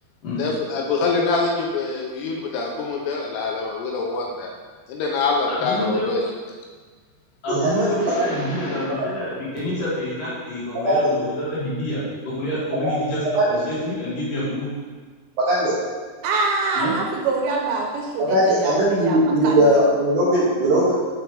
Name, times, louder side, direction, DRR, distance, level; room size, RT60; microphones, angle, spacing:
voice 1, 0.4-4.5 4.9-6.2, left 4 dB, 85° left, 0 dB, 2.6 m, -24 dB
voice 2, 5.5-6.1 7.4-14.7 16.7-16.9, left 1 dB, 55° left, -9 dB, 3.4 m, -27 dB
voice 3, 7.5-8.8 10.7-11.0 12.8-12.9 13.4-13.5 15.4-15.7 18.2-20.9, right 1 dB, 70° right, -9 dB, 2.0 m, -19 dB
voice 4, 16.2-19.8, right 4 dB, 85° right, 0 dB, 3.1 m, -25 dB
7.1 x 6.0 x 3.3 m, 1.4 s
omnidirectional pair, 5.1 m